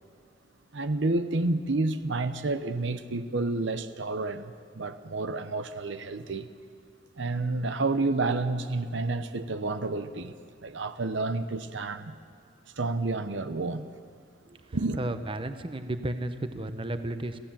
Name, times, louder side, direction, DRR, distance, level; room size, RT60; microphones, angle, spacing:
voice 1, 0.7-6.5 7.2-10.4 10.6-12.2 12.8-13.9 14.7-15.0, right 2 dB, 70° right, 0.8 m, -30 dB
voice 2, 15.0-17.4, right 1 dB, 30° right, 0.9 m, -33 dB
27.0 x 15.0 x 7.4 m
head